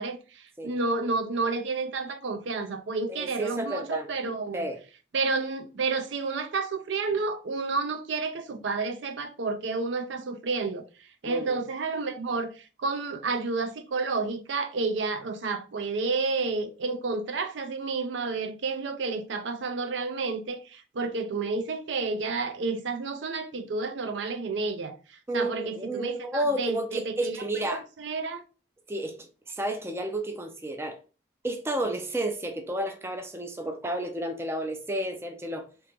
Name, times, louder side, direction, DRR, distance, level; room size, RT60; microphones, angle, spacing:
voice 1, 0.0-4.7 5.1-10.8 11.2-28.4, right 4 dB, 75° right, 0.5 m, -30 dB
voice 2, 3.1-4.1 4.5-4.8 11.2-11.6 25.3-27.8 28.9-31.0 31.4-35.7, right 1 dB, 15° right, 0.4 m, -31 dB
3.0 x 2.8 x 3.4 m
head